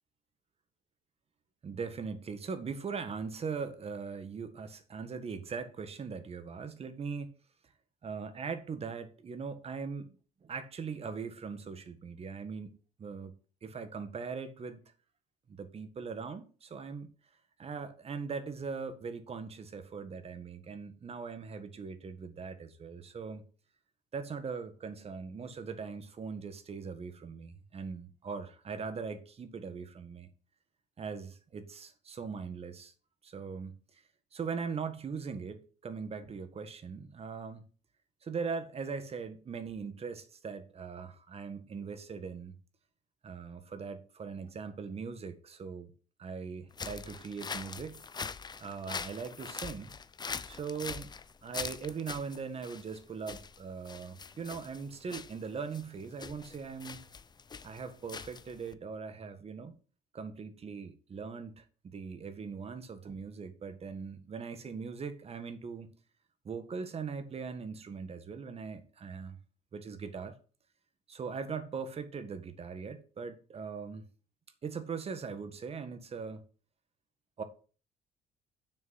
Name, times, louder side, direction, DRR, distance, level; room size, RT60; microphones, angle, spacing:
voice 1, 1.6-7.3 8.0-10.2 10.4-14.8 15.5-17.1 17.6-23.4 24.1-30.3 31.0-32.9 33.2-34.0 34.3-37.7 38.2-42.5 43.2-45.9 46.2-48.0 48.6-49.9 50.5-51.1 51.4-57.0 57.6-59.7 60.1-65.9 66.4-69.4 69.7-70.3 71.1-74.1 74.6-76.4 77.4-77.5, right 5 dB, 35° right, 1.7 m, -40 dB
sound 1, 46.7-58.7, left 5 dB, 25° left, 0.7 m, -43 dB
7.0 x 6.5 x 7.6 m
cardioid pair, 110°, 17 cm